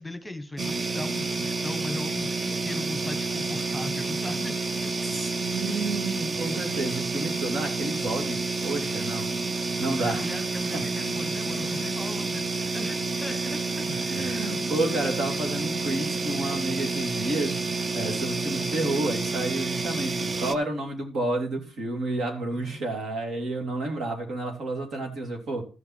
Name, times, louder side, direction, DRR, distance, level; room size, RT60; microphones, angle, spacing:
voice 1, 0.0-4.9 10.0-13.6 22.5-22.8, left 2 dB, 10° left, 9 dB, 1.2 m, -38 dB
sound 1, 0.6-20.6, right 3 dB, 30° right, 0.6 m, -29 dB
voice 2, 5.1-8.4 8.6-9.3 9.5-10.4 10.7-10.8 11.6-12.0 13.3-13.5 13.9-25.6, right 2 dB, 65° right, 3 dB, 2.7 m, -31 dB
14.0 x 5.5 x 4.4 m, 0.34 s
cardioid pair, 90°, 0 cm